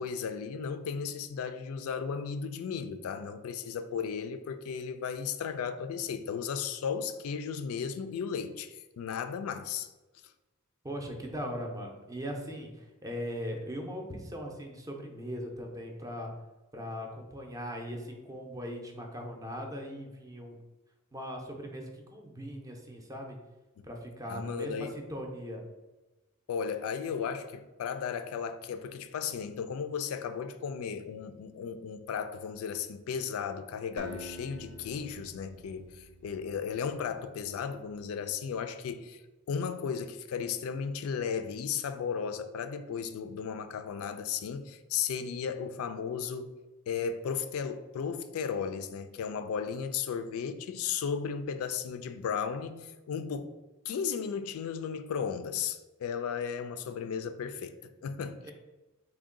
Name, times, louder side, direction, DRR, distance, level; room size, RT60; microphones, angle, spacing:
voice 1, 0.0-9.9 23.8-23.9 24.3-24.9 26.5-39.2 39.5-46.5 46.9-53.5 53.9-58.5, left 6 dB, 75° left, 0.3 m, -35 dB
voice 2, 10.8-16.3 16.7-20.6 21.1-23.4 23.8-25.6 58.4-58.5, equal, 15° right, 0.5 m, -39 dB
Acoustic guitar, 34.0-37.0, equal, 65° right, 0.6 m, -48 dB
3.5 x 2.2 x 3.6 m
head